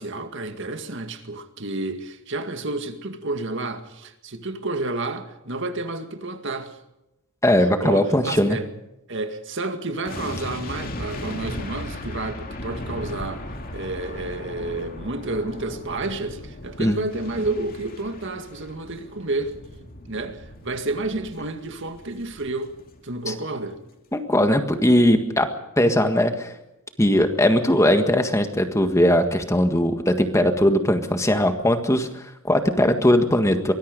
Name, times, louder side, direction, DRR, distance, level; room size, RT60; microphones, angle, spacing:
voice 1, 0.0-6.8 7.8-8.7 9.1-13.4 13.7-19.6 20.1-22.8 23.0-23.8, right 2 dB, 60° right, 2.1 m, -30 dB
voice 2, 7.4-8.6 16.8-16.9 23.3-23.4 24.1-25.5 25.8-26.5 27.0-33.7, left 1 dB, 15° left, 1.7 m, -19 dB
sound 1, 10.0-23.2 23.5-23.6, left 1 dB, 40° left, 2.7 m, -37 dB
24.0 x 20.5 x 5.3 m
head